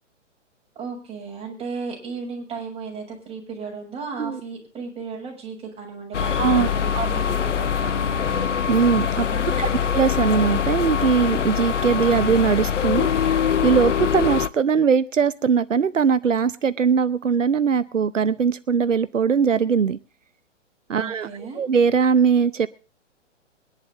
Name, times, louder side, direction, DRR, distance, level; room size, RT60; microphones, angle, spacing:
voice 1, 0.8-8.4 9.3-9.9 21.0-21.6, right 5 dB, 15° right, 0 dB, 6.9 m, -35 dB
sound 1, 6.1-14.5, left 8 dB, 75° left, 0.9 m, -23 dB
voice 2, 6.4-7.1 8.7-9.3 9.6-20.0 20.9-21.3 21.6-22.7, right 6 dB, 85° right, 16 dB, 0.8 m, -21 dB
22.0 x 11.0 x 3.7 m, 0.35 s
figure-of-eight pair, 120°, 37 cm